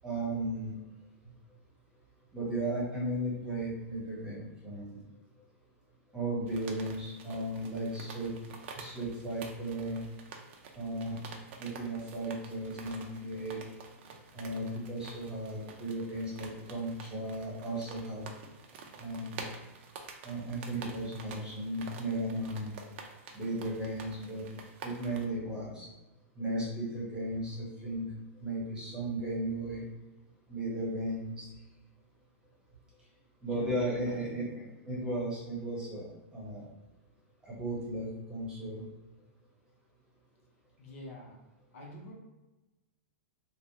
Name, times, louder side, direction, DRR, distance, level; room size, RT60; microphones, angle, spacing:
voice 1, 0.0-0.7 2.3-5.0 6.1-8.3 8.7-10.0 10.8-11.2 11.6-13.6 14.3-18.2 19.0-19.4 20.2-22.8 23.3-24.4 24.8-25.9 26.4-28.1 28.4-29.8 30.5-31.5 33.4-36.1 36.3-36.6 37.4-38.8, right 1 dB, 10° right, -5 dB, 1.0 m, -35 dB
sound 1, 6.5-25.3, right 5 dB, 50° right, 0.5 m, -49 dB
voice 2, 33.5-34.5 40.8-41.4 41.7-42.1, left 1 dB, 65° left, -1 dB, 0.8 m, -47 dB
3.2 x 2.2 x 2.7 m, 1.1 s
hypercardioid pair, 145°, 8 cm